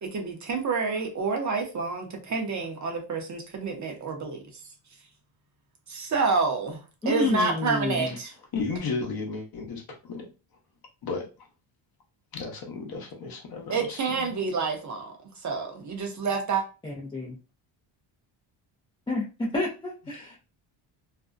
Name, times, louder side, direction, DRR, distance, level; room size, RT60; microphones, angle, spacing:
voice 1, 0.0-4.4 5.9-6.8 7.1-8.3 13.7-15.1 15.4-16.6, right 4 dB, 35° right, 3 dB, 0.6 m, -28 dB
voice 2, 7.0-8.1 16.8-17.4 19.1-20.4, left 2 dB, 10° left, -5 dB, 0.4 m, -29 dB
voice 3, 8.5-10.3 11.0-11.5 12.3-14.3, left 4 dB, 45° left, 1 dB, 0.8 m, -34 dB
2.5 x 2.0 x 2.4 m, 0.31 s
cardioid pair, 105°, 49 cm